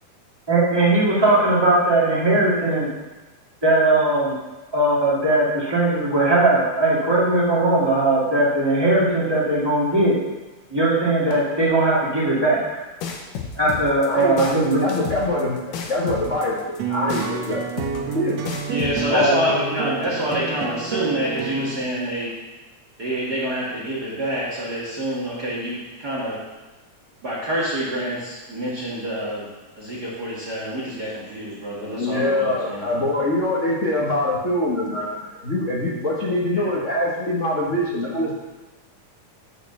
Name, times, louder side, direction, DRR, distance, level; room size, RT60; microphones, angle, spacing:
voice 1, 0.5-2.9 3.6-4.4 4.7-10.2 10.7-12.6 13.5-14.8 19.1-19.3, right 2 dB, 10° right, -7 dB, 1.7 m, -19 dB
sound 1, 13.0-19.0, left 6 dB, 90° left, 2.6 m, -31 dB
voice 2, 14.1-15.6 15.9-17.6 18.1-18.4 31.9-38.4, left 1 dB, 50° left, -6 dB, 0.9 m, -24 dB
sound 2, 16.8-21.8, right 6 dB, 70° right, 1.8 m, -29 dB
voice 3, 18.7-22.3 23.0-26.4 27.2-29.5 29.8-32.9 36.5-36.6, equal, 40° right, -6 dB, 1.6 m, -27 dB
6.5 x 6.4 x 7.1 m, 1.1 s
omnidirectional pair, 3.6 m